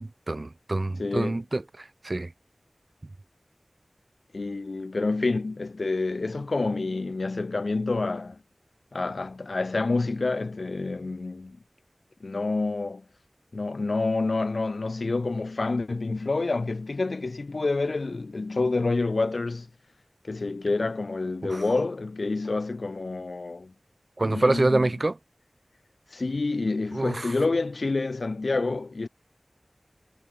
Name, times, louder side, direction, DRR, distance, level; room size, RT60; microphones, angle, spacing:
voice 1, 0.0-2.3 21.5-21.6 24.2-25.1 26.9-27.3, right 2 dB, 50° right, 2.6 m, -26 dB
voice 2, 1.0-1.4 4.3-8.4 8.9-11.6 12.2-13.0 13.5-19.7 20.2-23.7 24.2-24.9 26.1-29.1, left 3 dB, 85° left, 2.7 m, -28 dB
wide cardioid pair, 45°, 0 cm